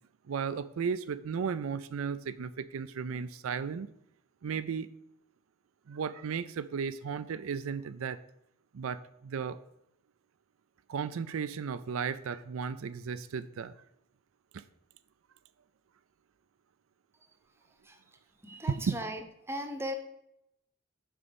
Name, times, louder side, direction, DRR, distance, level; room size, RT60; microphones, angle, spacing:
voice 1, 0.3-3.9 4.4-4.9 5.9-8.2 8.7-9.6 10.9-13.7 14.5-14.6 18.9-19.0, right 6 dB, 80° right, 12 dB, 0.4 m, -35 dB
voice 2, 17.8-19.9, equal, 10° right, 6 dB, 0.8 m, -39 dB
6.9 x 5.3 x 6.9 m, 0.79 s
head